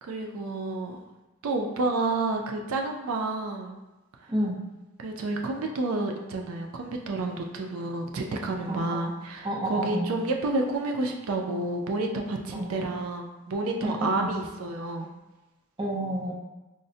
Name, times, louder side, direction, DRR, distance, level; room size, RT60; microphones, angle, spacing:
voice 1, 0.0-1.0 1.4-3.8 5.0-15.1, right 2 dB, 80° right, 2 dB, 0.4 m, -30 dB
voice 2, 4.3-4.6 8.7-9.1 9.4-10.1 12.5-12.7 13.8-14.4 15.8-16.3, right 1 dB, 25° right, -2 dB, 0.5 m, -30 dB
4.9 x 2.0 x 2.7 m, 1.1 s
head